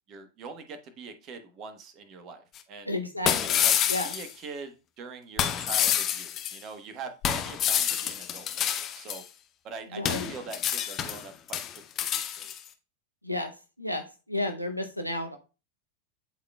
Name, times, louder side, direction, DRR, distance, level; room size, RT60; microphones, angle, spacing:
voice 1, 0.1-3.0 3.5-3.8 4.0-9.2 9.6-11.6 12.0-12.5, right 4 dB, 35° right, 8 dB, 1.1 m, -43 dB
sound 1, 2.6-2.7 3.3-4.3 5.4-6.6 7.2-9.2 10.0-11.2 11.5-12.6, left 10 dB, 30° left, 0.8 m, -28 dB
voice 2, 2.9-3.6 3.9-4.1 10.0-10.3 13.2-13.5 13.8-14.0 14.3-15.4, left 1 dB, 90° right, 7 dB, 0.7 m, -31 dB
11.5 x 3.9 x 2.2 m, 0.32 s
figure-of-eight pair, 90°, 0 cm